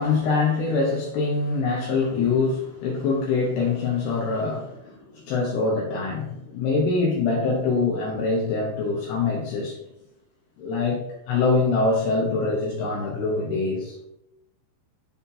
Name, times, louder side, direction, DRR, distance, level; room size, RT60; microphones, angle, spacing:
voice 1, 0.0-9.8 10.6-11.0 11.3-14.0, left 4 dB, 70° left, -2 dB, 2.7 m, -24 dB
10.0 x 4.3 x 2.7 m, 0.84 s
omnidirectional pair, 5.8 m